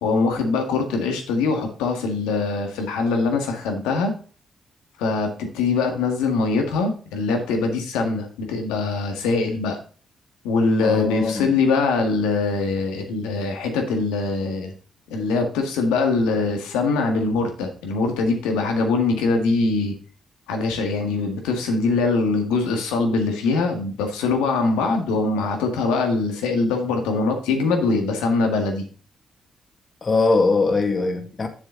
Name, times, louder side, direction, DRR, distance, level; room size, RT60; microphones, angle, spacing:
voice 1, 0.0-4.1 5.0-9.8 10.4-14.7 15.1-19.9 20.5-28.8, left 3 dB, 90° left, 1.8 m, -22 dB
voice 2, 10.8-11.5 30.0-31.5, left 3 dB, 45° left, 2.0 m, -21 dB
7.3 x 7.2 x 3.9 m
supercardioid pair, 50°, 0 cm